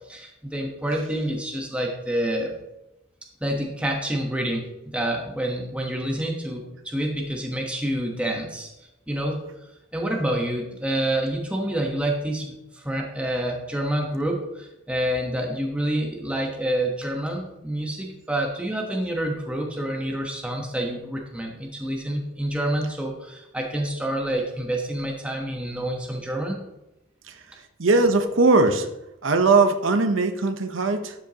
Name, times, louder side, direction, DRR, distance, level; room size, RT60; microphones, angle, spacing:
voice 1, 0.0-2.5 3.4-8.7 9.1-26.6, right 1 dB, 5° right, 0 dB, 1.1 m, -28 dB
voice 2, 27.8-28.9 29.2-31.1, right 3 dB, 85° right, 7 dB, 0.8 m, -20 dB
12.5 x 6.9 x 2.9 m, 0.91 s
head